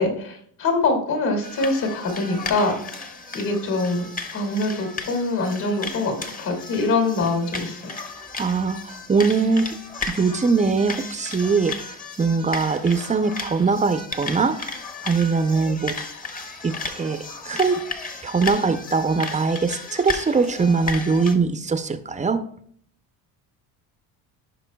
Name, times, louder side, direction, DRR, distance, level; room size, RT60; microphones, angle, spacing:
voice 1, 0.0-3.1 3.3-4.0 4.3-6.1 6.4-7.8, left 3 dB, 65° left, 2 dB, 2.7 m, -24 dB
sound 1, 1.4-21.3, left 3 dB, 20° left, 0.9 m, -35 dB
voice 2, 8.4-9.8 10.1-11.8 12.2-14.7 15.0-15.9 16.6-17.2 17.4-17.8 18.2-22.4, right 4 dB, 20° right, 10 dB, 0.5 m, -21 dB
15.0 x 5.5 x 2.3 m, 0.63 s
cardioid pair, 105°, 42 cm